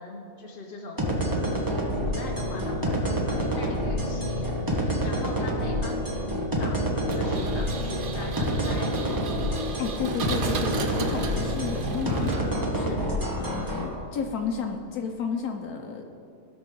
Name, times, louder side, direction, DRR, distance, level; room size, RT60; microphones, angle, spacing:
voice 1, 0.0-1.5 2.0-6.2 6.6-9.3, left 3 dB, 50° left, 0 dB, 0.7 m, -41 dB
sound 1, 1.0-13.9, equal, 15° right, 1.0 m, -27 dB
Engine, 7.1-12.8, right 5 dB, 65° right, 0.5 m, -37 dB
voice 2, 9.8-16.0, left 6 dB, 75° left, 3 dB, 1.1 m, -33 dB
16.0 x 6.0 x 3.8 m, 2.6 s
omnidirectional pair, 1.7 m